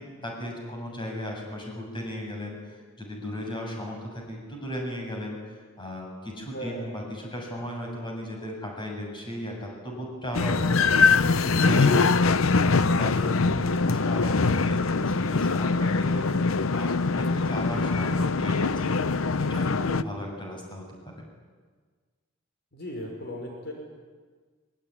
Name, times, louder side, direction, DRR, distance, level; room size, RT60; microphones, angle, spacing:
voice 1, 0.0-12.2 12.6-18.9 19.4-21.2, equal, 25° left, 0 dB, 7.5 m, -36 dB
voice 2, 6.5-6.9 22.7-23.7, equal, 55° left, 1 dB, 5.6 m, -36 dB
sound 1, 10.3-20.0, left 4 dB, 90° left, 0.7 m, -23 dB
23.5 x 23.5 x 9.8 m, 1.5 s
head